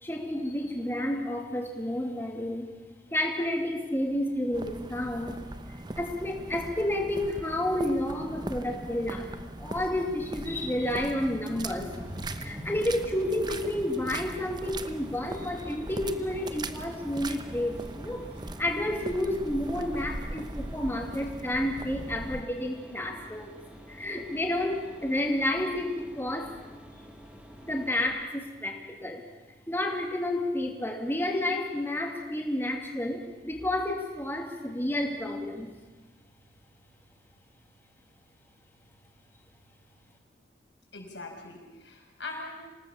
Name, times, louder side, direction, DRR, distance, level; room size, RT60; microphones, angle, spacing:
voice 1, 0.0-2.6 3.1-5.3 6.0-18.3 18.6-23.6 23.9-26.5 27.6-29.2 29.7-35.7, left 1 dB, 10° left, 2 dB, 2.7 m, -30 dB
sound 1, 4.5-22.4, right 2 dB, 25° right, 0.9 m, -40 dB
Mechanisms, 11.9-28.1, equal, 5° right, 2.2 m, -49 dB
voice 2, 40.9-42.6, left 2 dB, 75° left, 1 dB, 6.3 m, -41 dB
27.0 x 18.5 x 7.3 m, 1.2 s
head